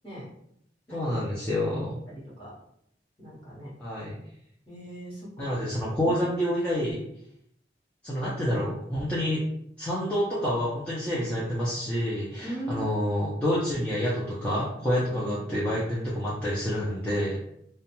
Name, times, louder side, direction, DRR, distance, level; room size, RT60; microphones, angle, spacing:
voice 1, 0.9-2.0 3.8-4.1 5.4-7.0 8.0-9.4 9.8-17.4, equal, 5° left, -9 dB, 0.4 m, -28 dB
voice 2, 2.1-2.5 3.2-3.7 4.7-5.5 8.5-8.6 12.4-13.1 15.0-15.7, right 1 dB, 25° left, -6 dB, 1.0 m, -40 dB
2.4 x 2.1 x 2.9 m, 0.72 s
head